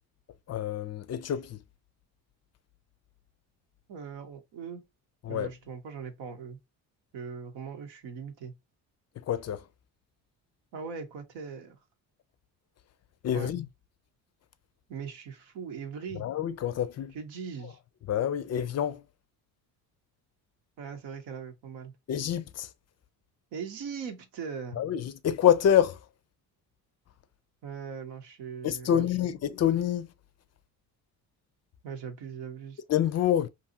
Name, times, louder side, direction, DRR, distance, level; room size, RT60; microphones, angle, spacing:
voice 1, 0.5-1.6 5.2-5.5 9.3-9.6 13.2-13.7 16.2-17.1 18.1-19.0 22.1-22.7 24.8-26.0 28.6-30.1 32.9-33.5, left 10 dB, 35° left, 0.4 m, -27 dB
voice 2, 3.9-4.8 5.3-6.6 7.1-8.5 10.7-11.8 13.3-13.5 14.9-16.3 17.1-17.8 20.8-22.0 23.5-24.8 27.6-29.3 31.8-32.8, right 6 dB, 70° right, 0.9 m, -40 dB
2.7 x 2.3 x 2.6 m
hypercardioid pair, 55°, 47 cm